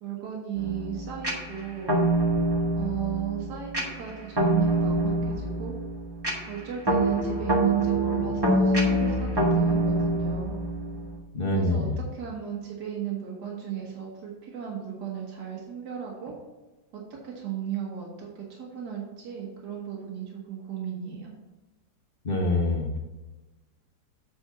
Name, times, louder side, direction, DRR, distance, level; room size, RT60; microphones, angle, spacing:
voice 1, 0.0-1.9 2.8-5.7 6.5-10.5 11.5-11.9 12.1-16.3 16.9-21.4, right 8 dB, 70° right, -3 dB, 1.9 m, -36 dB
sound 1, 0.6-11.2, right 1 dB, 15° right, 1.3 m, -25 dB
voice 2, 11.3-12.0 22.2-23.0, left 2 dB, 35° left, 0 dB, 1.2 m, -25 dB
8.4 x 4.4 x 5.8 m, 1.1 s
omnidirectional pair, 1.9 m